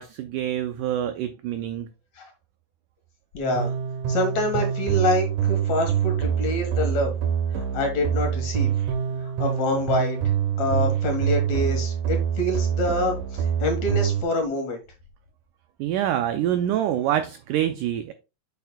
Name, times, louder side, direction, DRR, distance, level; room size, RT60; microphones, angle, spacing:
voice 1, 0.0-1.9 15.8-18.1, right 11 dB, 85° right, 9 dB, 1.8 m, -26 dB
voice 2, 3.3-3.7 4.1-7.1 7.5-8.7 9.2-14.8, left 1 dB, 55° left, 3 dB, 2.5 m, -26 dB
sound 1, 3.6-14.2, right 9 dB, 70° right, 2.3 m, -25 dB
8.4 x 7.1 x 2.2 m, 0.28 s
omnidirectional pair, 4.3 m